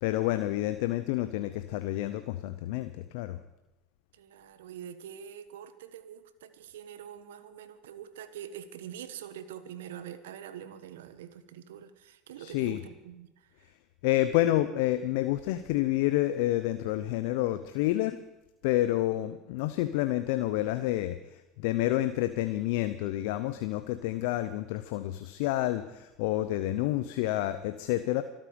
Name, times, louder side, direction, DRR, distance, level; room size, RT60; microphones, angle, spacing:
voice 1, 0.0-3.4 12.4-12.8 14.0-18.2 18.6-21.2 21.6-28.2, left 15 dB, 70° left, 11 dB, 0.7 m, -29 dB
voice 2, 4.1-13.7, right 9 dB, 80° right, 12 dB, 1.2 m, -45 dB
25.0 x 9.0 x 5.2 m, 0.98 s
hypercardioid pair, 75°, 0 cm